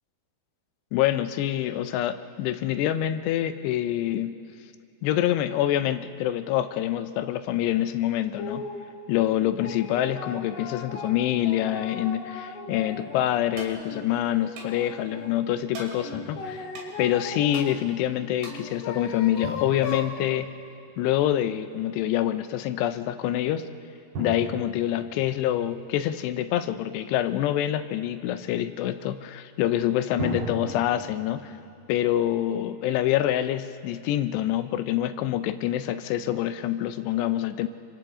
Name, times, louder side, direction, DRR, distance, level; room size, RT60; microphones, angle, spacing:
voice 1, 0.9-4.3 5.0-8.7 9.1-16.7 17.0-20.5 21.0-23.6 24.2-31.5 31.9-37.7, left 12 dB, 85° left, 10 dB, 2.9 m, -26 dB
sound 1, 8.4-8.8 9.3-13.3 13.7-15.3 16.0-17.6 18.5-20.2, left 4 dB, 65° left, 4.0 m, -37 dB
sound 2, 13.6-13.8 14.6-14.8 15.7-15.9 16.7-16.9 17.5-17.7 18.4-18.7, right 3 dB, 85° right, 4.9 m, -39 dB
Drum, 16.1-16.9 19.4-21.2 24.1-26.6 30.2-33.3, right 1 dB, 60° right, 5.0 m, -39 dB
30.0 x 24.5 x 3.8 m, 2.5 s
omnidirectional pair, 4.8 m